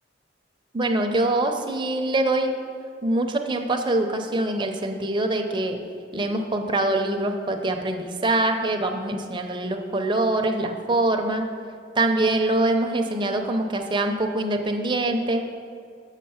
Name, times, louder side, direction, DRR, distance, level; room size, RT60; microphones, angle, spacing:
voice 1, 0.7-2.5 3.0-5.8 6.1-11.5 12.0-15.5, right 2 dB, 25° right, 4 dB, 0.6 m, -24 dB
7.1 x 5.5 x 5.6 m, 2.3 s
head